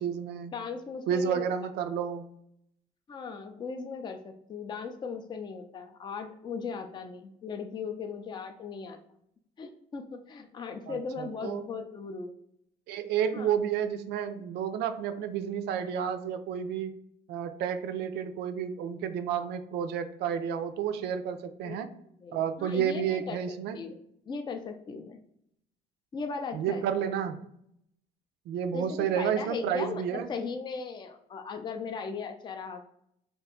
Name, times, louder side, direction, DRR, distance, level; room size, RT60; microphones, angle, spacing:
voice 1, 0.0-0.5 1.1-2.3 10.9-11.7 12.9-16.9 17.3-21.9 22.3-23.8 26.5-27.5 28.5-30.3, right 8 dB, 80° right, 10 dB, 0.4 m, -31 dB
voice 2, 0.5-1.5 3.1-9.0 9.6-12.3 13.3-13.5 21.6-21.8 22.2-24.0 24.3-25.2 26.1-26.9 28.7-32.8, left 5 dB, 25° left, 5 dB, 0.4 m, -38 dB
2.7 x 2.2 x 3.6 m, 0.72 s
cardioid pair, 110°, 17 cm